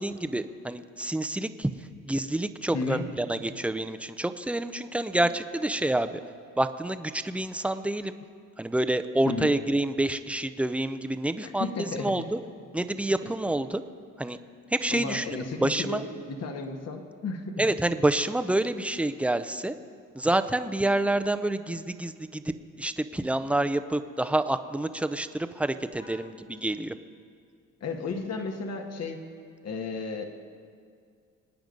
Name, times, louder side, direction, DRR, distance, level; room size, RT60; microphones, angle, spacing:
voice 1, 0.0-1.7 2.0-6.2 6.6-8.2 8.6-12.4 12.7-13.8 14.2-14.4 14.7-16.0 17.6-19.7 20.2-22.4 22.8-26.9, right 1 dB, 5° right, 10 dB, 0.7 m, -28 dB
voice 2, 11.4-12.3 14.9-17.6 26.0-26.3 27.8-29.2 29.6-30.2, left 4 dB, 55° left, 4 dB, 1.7 m, -33 dB
25.5 x 9.2 x 5.3 m, 2.2 s
cardioid pair, 90°, 30 cm